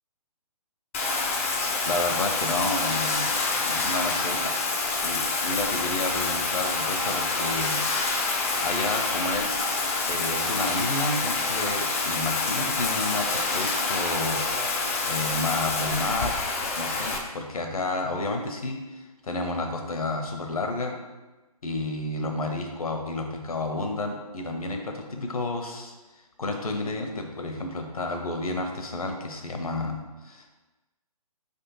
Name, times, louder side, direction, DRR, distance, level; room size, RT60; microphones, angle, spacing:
Bathtub (filling or washing), 0.9-17.2, left 3 dB, 20° left, 0.4 m, -27 dB
voice 1, 1.9-3.3 3.6-7.8 8.6-14.4 15.0-16.4 16.8-20.9 21.6-25.9 26.4-30.5, left 2 dB, 65° left, 4 dB, 0.8 m, -31 dB
4.9 x 3.5 x 2.9 m, 1.1 s
figure-of-eight pair, 140°, 20 cm